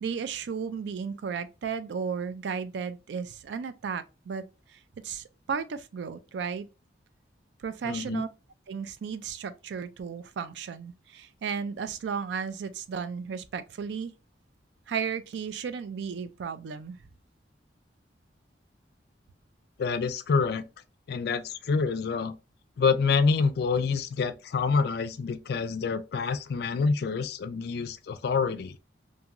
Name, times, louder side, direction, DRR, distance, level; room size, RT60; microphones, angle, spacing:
voice 1, 0.0-4.4 4.7-6.7 7.6-8.3 8.7-14.1 14.9-17.0, right 6 dB, 70° right, 0.3 m, -34 dB
voice 2, 7.8-8.2 19.8-20.6 21.1-22.3 22.8-28.8, left 5 dB, 60° left, 0.3 m, -27 dB
2.6 x 2.4 x 2.8 m
head